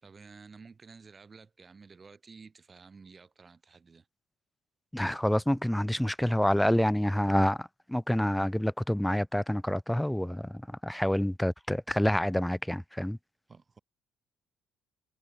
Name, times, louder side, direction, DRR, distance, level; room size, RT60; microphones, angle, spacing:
voice 1, 0.0-4.1 13.5-13.8, right 4 dB, 30° right, 5.4 m, -52 dB
voice 2, 4.9-13.2, equal, 5° left, 0.4 m, -28 dB
cardioid pair, 110°, 0 cm